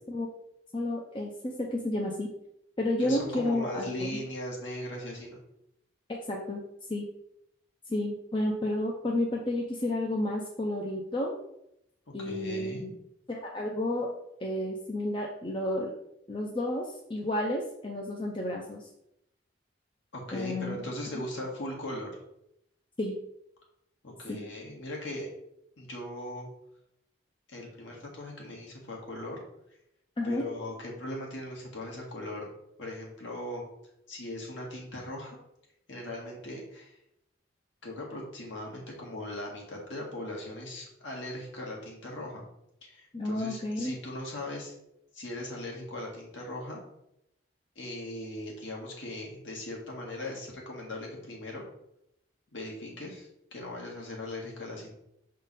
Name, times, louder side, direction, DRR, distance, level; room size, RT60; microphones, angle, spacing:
voice 1, 0.7-2.3 2.8-4.2 6.3-6.6 6.9-7.0 7.9-11.4 12.1-12.9 13.3-14.1 14.4-15.9 16.3-18.9 20.3-20.8 23.0-23.2 24.3-24.4 30.2-30.5 43.1-43.9, left 1 dB, 25° left, -1 dB, 0.5 m, -31 dB
voice 2, 3.0-5.4 12.2-12.9 20.1-22.2 24.0-25.3 25.8-26.5 27.5-29.4 30.2-32.5 32.8-33.6 34.1-35.4 35.9-37.0 37.8-42.4 42.8-44.7 45.1-46.8 47.7-51.7 52.5-54.9, left 1 dB, 70° left, -1 dB, 1.7 m, -39 dB
6.2 x 3.8 x 4.1 m, 0.81 s
head